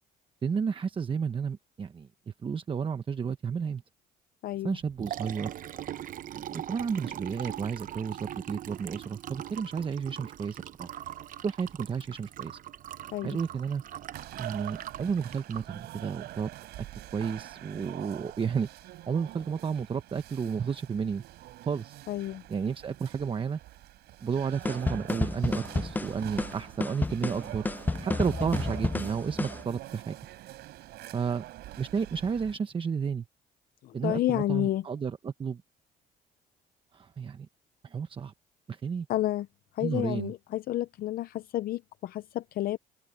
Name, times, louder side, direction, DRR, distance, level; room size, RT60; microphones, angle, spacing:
voice 1, 0.4-3.8 4.6-5.5 6.3-10.9 11.4-12.6 13.2-13.8 14.4-16.5 16.8-16.9 17.1-18.7 19.1-21.2 21.7-22.0 22.5-23.6 24.2-27.7 28.0-30.2 31.1-31.4 31.8-33.3 33.9-35.6 36.9-37.5 37.8-38.3 38.7-39.1 39.8-40.3, right 6 dB, 30° right, 1.0 m, -32 dB
voice 2, 4.4-4.8 13.1-13.4 22.1-22.4 33.8-34.8 39.1-39.5 39.7-42.8, left 14 dB, 60° left, 0.6 m, -30 dB
Liquid, 4.7-16.6, right 11 dB, 55° right, 0.8 m, -42 dB
sound 1, 14.1-32.6, right 16 dB, 80° right, 4.2 m, -45 dB
sound 2, 24.6-29.6, left 3 dB, 10° left, 0.4 m, -31 dB
open air
cardioid pair, 110°, 17 cm